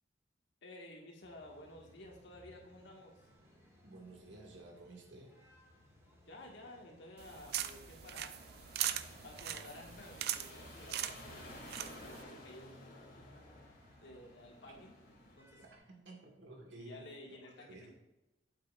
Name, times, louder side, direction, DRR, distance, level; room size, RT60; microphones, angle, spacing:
voice 1, 0.6-3.2 6.3-8.3 8.8-12.9 14.0-14.9 15.4-15.6 16.7-17.9, left 1 dB, 70° left, -1 dB, 1.7 m, -53 dB
sound 1, 1.2-15.8, equal, 15° right, 1.9 m, -63 dB
voice 2, 3.8-5.3 14.7-14.8 15.6-17.9, right 2 dB, 85° right, 0 dB, 1.8 m, -53 dB
sound 2, 7.2-15.4, left 2 dB, 55° left, 2.1 m, -55 dB
sound 3, 7.2-12.2, right 11 dB, 60° right, 0.4 m, -41 dB
8.7 x 8.0 x 2.5 m, 0.98 s
head